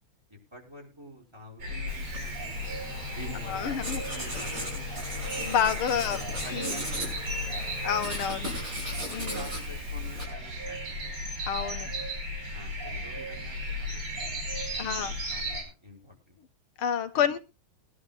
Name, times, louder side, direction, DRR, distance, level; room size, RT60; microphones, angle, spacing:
voice 1, 0.3-2.8 3.1-5.0 5.9-7.7 8.3-8.7 9.0-11.2 12.5-14.4 14.7-16.4 17.1-17.4, right 1 dB, 10° right, 1 dB, 5.7 m, -47 dB
sound 1, 1.6-15.6, left 1 dB, 85° right, 5.7 m, -35 dB
Writing, 1.9-10.2, right 1 dB, 40° right, 7.1 m, -39 dB
sound 2, 2.3-9.7, left 5 dB, 50° left, 1.3 m, -45 dB
voice 2, 3.5-4.0 5.4-6.2 6.5-6.8 7.8-8.5 9.1-9.5 11.5-11.9 14.8-15.4 16.8-17.4, left 8 dB, 85° left, 9 dB, 2.0 m, -29 dB
22.5 x 11.0 x 2.4 m, 0.29 s
omnidirectional pair, 2.3 m